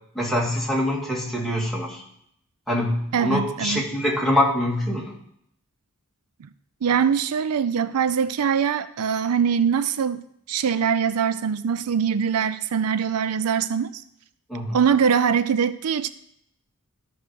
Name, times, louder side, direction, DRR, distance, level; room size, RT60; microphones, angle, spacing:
voice 1, 0.1-2.0 2.7-5.1 14.5-14.8, left 1 dB, ahead, -4 dB, 2.2 m, -24 dB
voice 2, 3.1-3.8 6.4-6.5 6.8-10.2 10.5-14.0 14.7-16.1, right 7 dB, 80° right, 14 dB, 0.5 m, -22 dB
13.0 x 6.3 x 4.8 m, 0.72 s
head